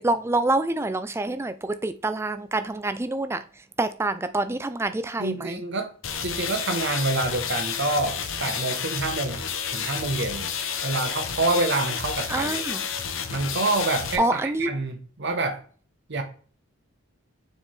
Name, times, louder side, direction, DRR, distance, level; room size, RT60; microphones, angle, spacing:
voice 1, 0.0-3.4 3.8-5.6 12.3-12.8 14.2-14.7, right 2 dB, 10° right, 0.3 m, -26 dB
voice 2, 5.2-5.9 6.2-9.4 9.7-10.5 10.8-12.6 13.3-15.6 16.1-16.2, right 2 dB, 55° right, 1.0 m, -27 dB
sound 1, 6.0-14.2, left 7 dB, 65° left, 0.7 m, -30 dB
6.8 x 4.4 x 3.3 m
head